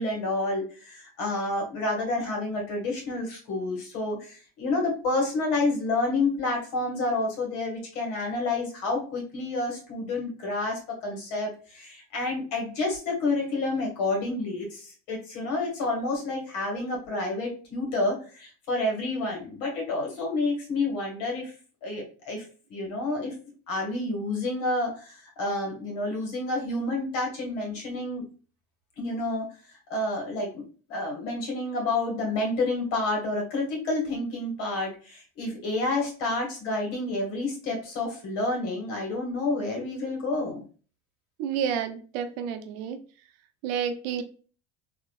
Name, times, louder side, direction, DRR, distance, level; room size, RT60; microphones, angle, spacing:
voice 1, 0.0-21.5 21.8-22.4 22.7-23.3 23.7-28.2 29.0-29.5 29.9-30.6 30.9-40.6, left 2 dB, 70° left, 1.8 m, -29 dB
voice 2, 41.4-43.0 43.6-44.2, right 8 dB, 75° right, 0.6 m, -30 dB
3.7 x 2.9 x 2.4 m
hypercardioid pair, 85°, 30 cm